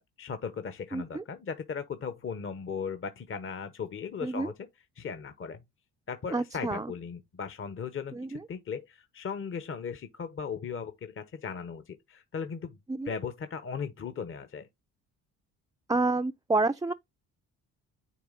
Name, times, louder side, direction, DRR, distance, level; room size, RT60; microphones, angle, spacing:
voice 1, 0.0-4.7 5.0-5.6 6.1-12.8 13.0-14.7, left 6 dB, 35° left, 0.9 m, -37 dB
voice 2, 0.9-1.2 4.2-4.5 6.3-6.9 8.1-8.4 12.9-13.1 15.9-16.9, right 3 dB, 10° right, 0.5 m, -29 dB
9.4 x 3.4 x 3.9 m
supercardioid pair, 70°, 36 cm